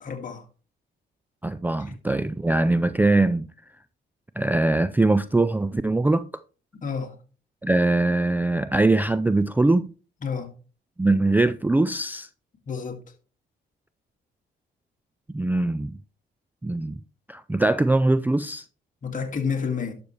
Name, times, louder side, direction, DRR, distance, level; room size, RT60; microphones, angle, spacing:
voice 1, 0.0-0.4 1.8-1.9 6.8-7.1 10.2-10.5 12.7-13.0 19.0-19.9, left 6 dB, 40° left, 2.2 m, -29 dB
voice 2, 1.4-3.5 4.4-6.3 7.6-9.9 11.0-12.3 15.3-15.9 16.6-16.9 17.3-18.6, right 2 dB, 10° right, 0.4 m, -22 dB
11.5 x 6.8 x 3.3 m
cardioid pair, 90°, 20 cm